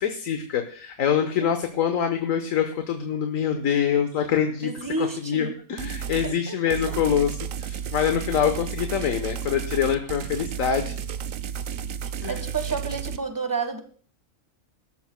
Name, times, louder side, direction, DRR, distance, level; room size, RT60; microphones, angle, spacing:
voice 1, 0.0-4.7 5.0-10.9 12.2-12.3, left 8 dB, 80° left, 6 dB, 1.4 m, -25 dB
voice 2, 4.6-5.5 6.2-6.9 8.3-8.4 12.0-13.8, right 4 dB, 15° right, 7 dB, 1.3 m, -31 dB
sound 1, 5.8-6.3 6.7-13.2, right 8 dB, 80° right, 1.2 m, -32 dB
23.5 x 13.0 x 2.2 m, 0.43 s
omnidirectional pair, 1.4 m